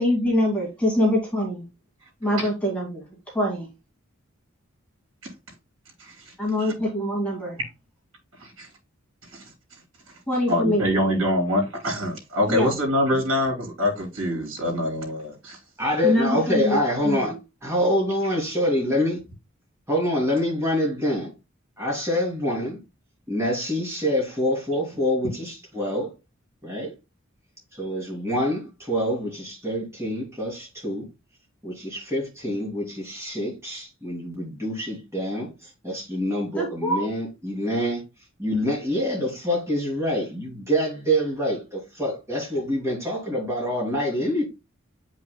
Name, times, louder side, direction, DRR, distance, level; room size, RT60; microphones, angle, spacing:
voice 1, 0.0-1.6 2.2-3.0 3.3-3.7 6.4-7.6 10.3-11.2 12.5-12.7 16.0-17.4 36.5-37.0, left 1 dB, 5° left, 2.2 m, -24 dB
voice 2, 6.0-6.3 8.4-8.7 9.3-9.5 10.5-15.6, left 1 dB, 75° right, 3.2 m, -25 dB
voice 3, 15.8-17.3 17.6-19.2 19.9-21.3 21.8-22.8 23.3-26.1 26.6-26.9 27.7-31.1 31.6-38.0 38.4-44.4, equal, 15° right, 2.8 m, -26 dB
8.2 x 5.3 x 2.2 m
head